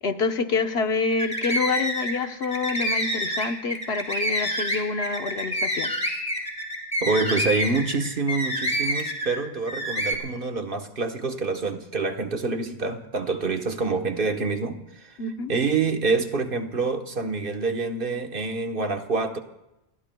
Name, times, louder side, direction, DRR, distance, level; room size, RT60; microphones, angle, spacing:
voice 1, 0.0-5.9 15.2-15.5, left 4 dB, 85° left, 7 dB, 1.3 m, -27 dB
sound 1, 1.1-2.1 2.4-9.4 9.7-10.1, equal, 5° left, 3.1 m, -27 dB
voice 2, 7.0-15.2 15.5-19.4, right 4 dB, 60° right, 5 dB, 1.4 m, -26 dB
29.5 x 20.0 x 2.3 m, 0.90 s
omnidirectional pair, 1.1 m